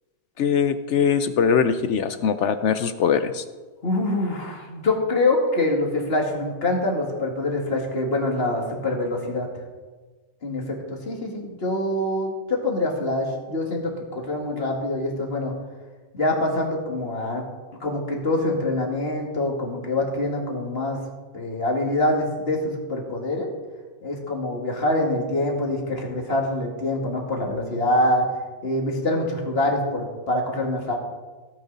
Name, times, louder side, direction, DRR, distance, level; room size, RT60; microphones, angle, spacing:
voice 1, 0.4-3.4, left 7 dB, 65° left, 11 dB, 0.8 m, -21 dB
voice 2, 3.8-9.5 10.4-15.5 16.1-17.4 17.8-21.0 21.3-23.5 24.0-28.2 28.6-31.0, left 1 dB, 40° left, 0 dB, 2.3 m, -25 dB
16.0 x 9.1 x 4.1 m, 1.3 s
omnidirectional pair, 1.6 m